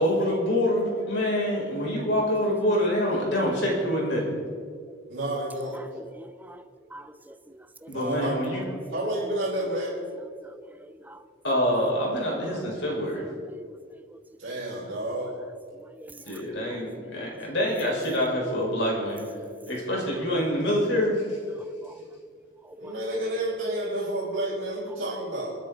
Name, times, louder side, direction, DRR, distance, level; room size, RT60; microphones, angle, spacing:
voice 1, 0.0-4.4 7.9-8.6 11.4-13.3 16.2-19.3 19.7-21.4, equal, 60° left, -3 dB, 5.1 m, -26 dB
voice 2, 5.1-5.8 7.9-8.5 8.9-9.9 14.4-15.3 22.8-25.6, right 1 dB, 55° right, -10 dB, 5.2 m, -30 dB
voice 3, 6.0-6.6 6.9-7.4 7.8-7.9 10.4-10.5 11.1-11.2 13.3-13.8 16.0-16.2 21.5-21.9 22.8-22.9, right 1 dB, 10° right, 11 dB, 0.4 m, -45 dB
28.5 x 9.9 x 4.0 m, 2.1 s
head